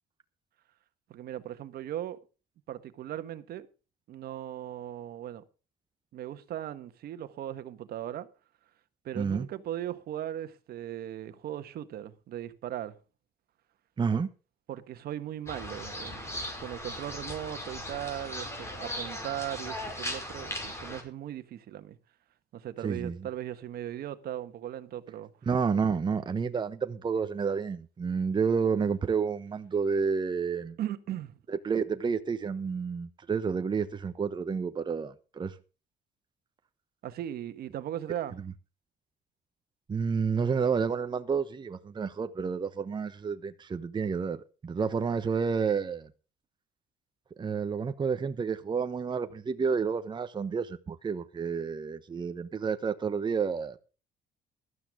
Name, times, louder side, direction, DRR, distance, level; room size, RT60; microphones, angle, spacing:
voice 1, 1.1-2.2 2.7-3.7 4.1-5.4 6.1-8.3 9.0-12.9 14.7-22.0 22.5-25.3 30.8-31.3 37.0-38.4, right 11 dB, 65° right, 1.5 m, -38 dB
voice 2, 9.2-9.5 14.0-14.3 22.8-23.2 25.5-30.8 31.5-35.5 39.9-46.1 47.4-53.8, right 5 dB, 25° right, 1.0 m, -30 dB
sound 1, 15.5-21.0, left 1 dB, 15° left, 5.2 m, -38 dB
15.5 x 12.5 x 3.6 m
cardioid pair, 110°, 17 cm